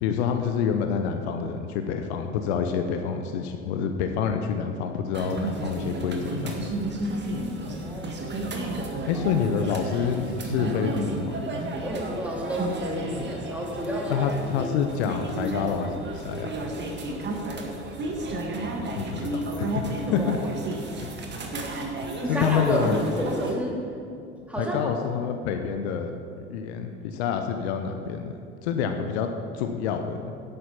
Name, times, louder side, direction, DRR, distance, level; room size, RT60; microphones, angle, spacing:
voice 1, 0.0-6.6 9.1-11.4 14.1-16.5 19.0-20.4 22.3-23.0 24.6-26.1 26.4-30.3, left 7 dB, 60° left, 6 dB, 0.9 m, -27 dB
sound 1, 5.1-23.5, right 2 dB, 30° right, 1.7 m, -32 dB
voice 2, 7.7-8.1 8.8-9.2 11.8-14.2 14.5-14.7 20.1-20.3 22.2-22.8 23.2-23.8 24.5-24.9, equal, 5° right, -2 dB, 2.9 m, -31 dB
10.5 x 8.8 x 5.5 m, 2.6 s
figure-of-eight pair, 70°, 36 cm